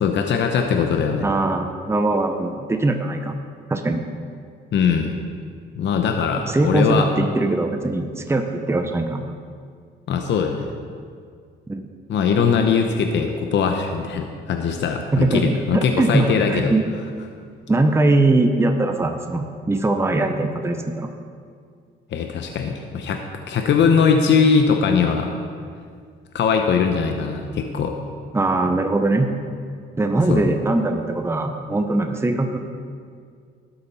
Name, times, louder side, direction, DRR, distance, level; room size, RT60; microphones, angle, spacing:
voice 1, 0.0-1.2 4.7-5.2 5.8-7.1 10.1-10.7 12.1-16.7 22.1-25.3 26.3-28.0 30.3-30.5, left 6 dB, 65° left, 4 dB, 0.8 m, -20 dB
voice 2, 1.2-3.4 3.7-4.0 6.5-9.3 11.7-11.9 15.1-16.8 17.7-21.1 28.3-29.3 30.0-32.6, right 2 dB, 15° right, 5 dB, 0.7 m, -21 dB
12.5 x 8.3 x 4.2 m, 2.2 s
cardioid pair, 90°, 20 cm